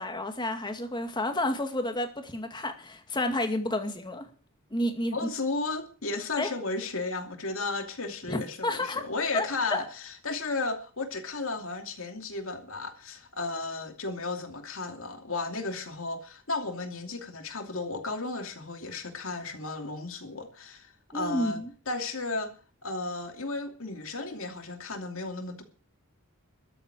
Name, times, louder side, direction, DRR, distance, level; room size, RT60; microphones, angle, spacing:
voice 1, 0.0-4.3 4.7-5.3 6.4-6.5 8.3-9.0 9.3-9.8 21.1-21.7, left 1 dB, 20° left, 6 dB, 2.2 m, -30 dB
voice 2, 5.1-22.5 22.8-25.6, left 3 dB, 60° left, 5 dB, 2.7 m, -34 dB
13.5 x 7.9 x 9.0 m, 0.41 s
head